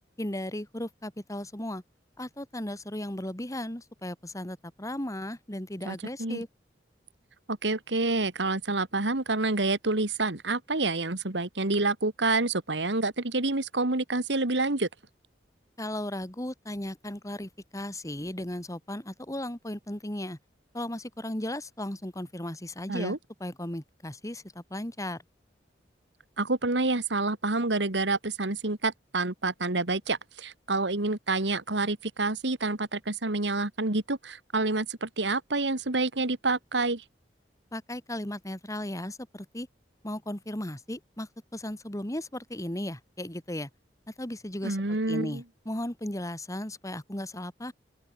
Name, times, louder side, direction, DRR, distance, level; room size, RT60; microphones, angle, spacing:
voice 1, 0.2-1.8 2.2-6.5 15.8-20.4 20.7-25.2 37.7-39.7 40.0-43.7 44.1-44.8 45.1-47.7, left 1 dB, 20° left, 2.7 m, -36 dB
voice 2, 5.9-6.4 7.5-14.9 22.9-23.2 26.4-37.0 44.6-45.4, right 3 dB, 80° right, 2.1 m, -28 dB
open air
head